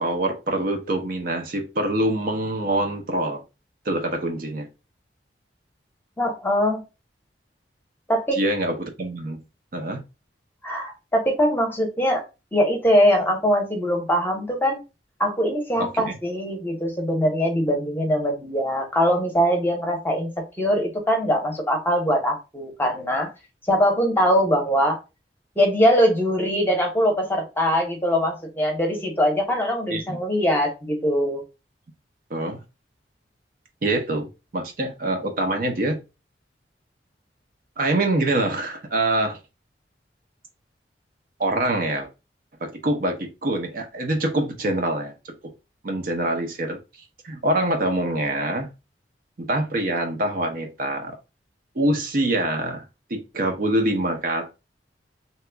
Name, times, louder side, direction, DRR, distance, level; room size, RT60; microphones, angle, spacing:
voice 1, 0.0-3.4 3.8-4.7 8.3-9.4 9.7-10.0 15.7-16.1 29.9-30.2 32.3-32.6 33.8-36.0 37.8-39.4 41.4-42.1 42.6-45.3 45.8-46.8 47.2-48.7 49.4-51.2 51.8-52.8 53.1-54.5, right 1 dB, 50° right, 0.6 m, -25 dB
voice 2, 6.2-6.8 8.1-8.4 10.6-12.2 12.5-14.8 15.2-23.3 23.7-25.0 25.6-31.4, equal, 10° left, 0.8 m, -22 dB
2.9 x 2.3 x 3.3 m
head